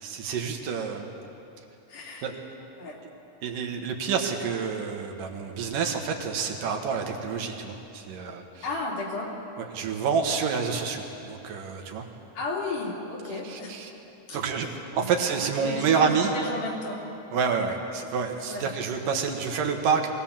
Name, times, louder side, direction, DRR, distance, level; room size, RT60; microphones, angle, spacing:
voice 1, 0.0-1.1 2.2-2.4 3.4-8.7 9.6-12.1 13.3-13.9 14.3-16.3 17.3-20.1, right 6 dB, 80° right, 3 dB, 3.1 m, -28 dB
voice 2, 1.9-2.3 2.8-3.0 8.6-9.3 12.3-13.7 14.3-14.7 15.0-15.1 15.6-17.0 18.5-18.7, left 2 dB, 70° left, -3 dB, 4.4 m, -33 dB
22.5 x 17.0 x 7.3 m, 2.8 s
omnidirectional pair, 3.8 m